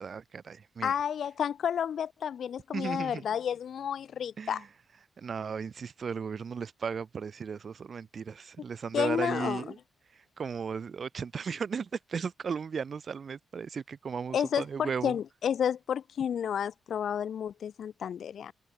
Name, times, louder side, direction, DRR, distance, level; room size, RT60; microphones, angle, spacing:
voice 1, 0.0-1.0 2.7-3.2 4.4-4.7 5.2-9.8 10.1-15.2, right 6 dB, 50° right, 0.6 m, -36 dB
voice 2, 0.8-4.6 8.9-9.6 14.3-18.5, left 8 dB, 70° left, 0.9 m, -31 dB
cardioid pair, 105°, 0 cm